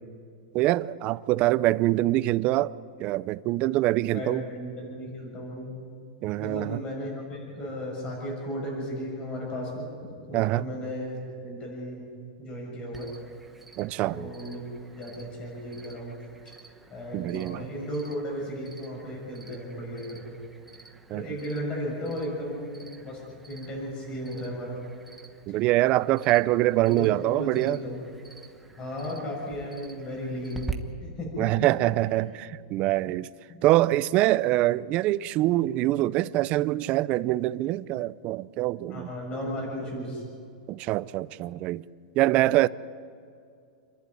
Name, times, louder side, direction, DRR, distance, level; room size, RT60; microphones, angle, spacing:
voice 1, 0.5-2.7 3.0-4.4 6.2-6.8 10.3-10.7 13.8-14.3 17.1-17.7 21.1-21.3 25.5-27.8 31.4-33.3 33.6-39.1 40.7-41.8 42.2-42.7, right 16 dB, 30° right, 0.4 m, -24 dB
voice 2, 4.1-5.8 6.4-9.8 10.3-12.1 12.4-13.1 14.1-14.6 14.9-16.1 16.9-20.3 21.1-23.2 23.5-24.8 26.9-28.0 28.8-30.7 31.0-31.5 38.9-40.2, equal, 25° left, 6.7 m, -35 dB
Cricket, 12.9-30.7, right 5 dB, 5° right, 1.0 m, -47 dB
28.0 x 11.5 x 9.6 m
supercardioid pair, 165°, 4 cm